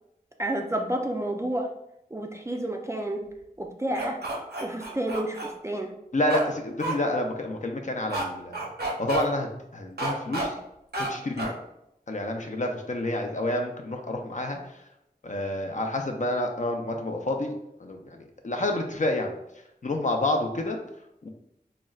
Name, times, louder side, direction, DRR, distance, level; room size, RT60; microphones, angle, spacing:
voice 1, 0.4-1.7 2.1-3.3 3.6-4.2 4.6-5.9, right 1 dB, 15° right, 3 dB, 0.3 m, -30 dB
sound 1, 3.9-5.5 6.3-6.5 6.8-6.9 8.1-8.2 8.5-9.2 10.0-10.5 10.9-11.1 11.4-11.5, right 2 dB, 80° right, 0.6 m, -30 dB
voice 2, 6.1-8.7 9.0-9.5 9.7-10.5 11.1-11.5 12.1-14.6 15.2-17.5 17.8-19.3 19.8-20.8 21.2-21.3, left 1 dB, 50° left, 3 dB, 0.4 m, -28 dB
3.6 x 2.1 x 2.3 m, 0.82 s
wide cardioid pair, 45°, 16 cm